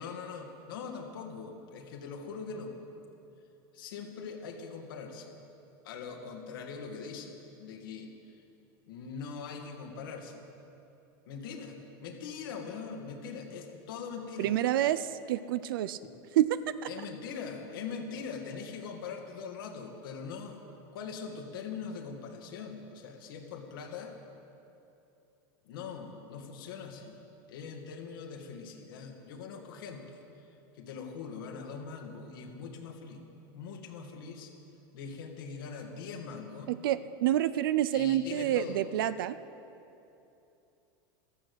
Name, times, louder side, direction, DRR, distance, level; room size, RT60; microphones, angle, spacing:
voice 1, 0.0-2.8 3.7-5.4 5.8-8.4 8.9-10.4 11.3-14.5 16.1-16.2 16.9-20.6 20.9-24.1 25.6-27.2 27.5-30.5 30.7-33.2 33.5-34.5 34.9-36.7 37.9-38.9, left 5 dB, 85° left, 3 dB, 2.4 m, -42 dB
voice 2, 14.4-16.0 16.4-16.7 36.7-39.4, right 12 dB, 90° right, 14 dB, 0.5 m, -28 dB
14.0 x 12.5 x 8.1 m, 2.8 s
supercardioid pair, 145°, 11 cm